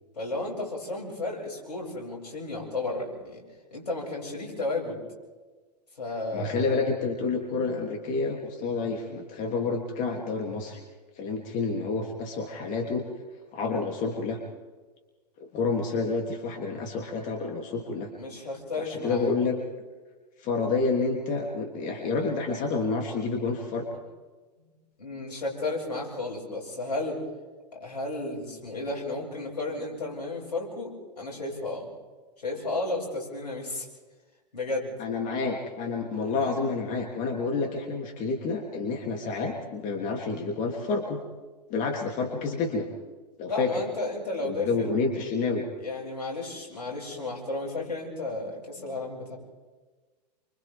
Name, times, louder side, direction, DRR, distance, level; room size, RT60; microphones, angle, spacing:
voice 1, 0.2-3.4 3.7-5.0 6.0-6.7 18.1-19.2 24.6-24.7 25.0-27.2 27.7-31.9 32.4-33.9 34.5-34.9 36.1-36.5 39.8-39.9 43.5-44.9 45.8-49.4, left 2 dB, 80° left, -1 dB, 7.9 m, -33 dB
voice 2, 6.3-10.8 11.2-13.1 13.5-14.4 15.4-18.1 18.8-19.6 20.4-23.9 35.0-41.2 41.7-42.9 43.4-43.8 44.4-45.7, left 4 dB, 40° left, 1 dB, 3.2 m, -29 dB
29.0 x 26.5 x 3.8 m, 1.3 s
figure-of-eight pair, 100°, 21 cm